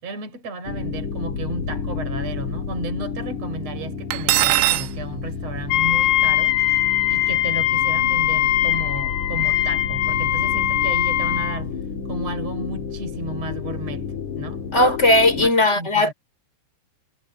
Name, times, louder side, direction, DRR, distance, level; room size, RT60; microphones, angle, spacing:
voice 1, 0.0-6.6 7.1-11.7 12.1-14.1 14.4-14.6 15.4-16.1, right 2 dB, 30° right, 6.6 m, -33 dB
sound 1, 0.7-15.5, left 5 dB, 45° left, 3.3 m, -31 dB
Cutlery silverware, 4.1-4.9, right 15 dB, 85° right, 3.4 m, -19 dB
Wind instrument woodwind instrument, 5.7-11.6, left 14 dB, 85° left, 4.4 m, -21 dB
voice 2, 14.7-16.1, left 1 dB, 15° left, 5.6 m, -17 dB
omnidirectional pair, 5.9 m